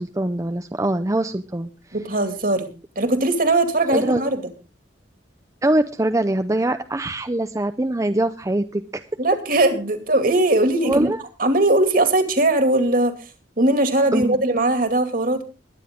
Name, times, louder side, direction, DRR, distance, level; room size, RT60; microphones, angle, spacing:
voice 1, 0.0-1.7 3.9-4.2 5.6-9.0 10.8-11.2 14.1-14.4, right 1 dB, 20° right, 8 dB, 0.6 m, -23 dB
voice 2, 1.9-2.7 3.0-4.4 9.2-11.1 11.4-13.3 13.6-15.4, right 2 dB, 50° right, 7 dB, 2.4 m, -19 dB
21.5 x 9.9 x 3.7 m, 0.32 s
head